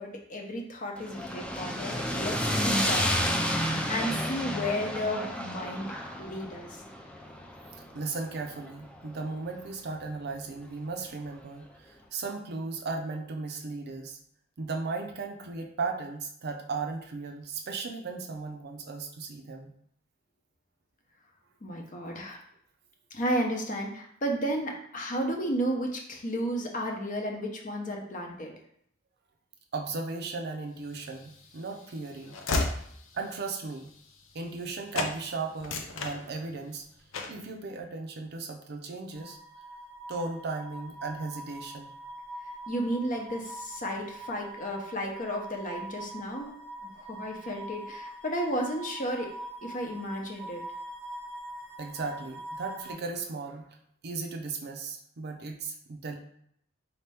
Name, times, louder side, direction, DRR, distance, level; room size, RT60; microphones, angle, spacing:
voice 1, 0.0-6.8 21.6-22.4 23.1-28.5 42.7-46.5 46.8-49.3 49.6-50.6, equal, 45° left, 1 dB, 0.7 m, -33 dB
sound 1, 1.0-9.2, equal, 5° left, 0.4 m, -31 dB
voice 2, 7.8-14.2 14.6-19.7 29.7-32.4 33.1-33.9 34.3-36.8 37.3-39.4 40.1-41.9 51.8-53.7 54.0-56.2, right 4 dB, 55° right, 3 dB, 0.5 m, -36 dB
Train / Slam, 31.0-34.7 34.9-35.2 35.5-36.7 37.1-37.5, left 3 dB, 85° left, 0.6 m, -34 dB
sound 2, 39.1-52.9, right 1 dB, 90° right, 0.9 m, -43 dB
4.1 x 2.9 x 3.4 m, 0.68 s
head